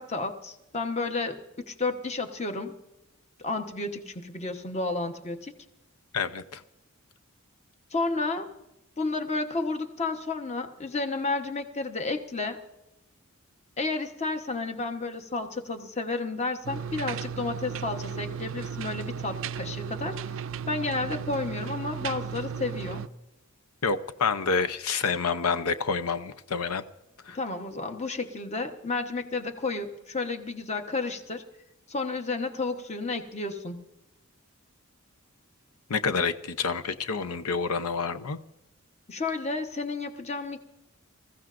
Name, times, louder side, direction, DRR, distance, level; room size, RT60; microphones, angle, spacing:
voice 1, 0.0-1.4 1.7-2.7 3.4-5.5 7.9-8.5 9.0-12.6 13.8-20.2 20.7-23.0 27.3-31.4 31.9-33.8 39.1-40.6, left 3 dB, 30° left, 6 dB, 1.0 m, -31 dB
voice 2, 6.1-6.6 23.8-26.8 27.2-27.4 35.9-38.4, left 5 dB, 85° left, 11 dB, 0.7 m, -28 dB
sound 1, 16.6-23.1, right 7 dB, 60° right, 0.4 m, -35 dB
26.5 x 15.0 x 2.5 m, 0.93 s
head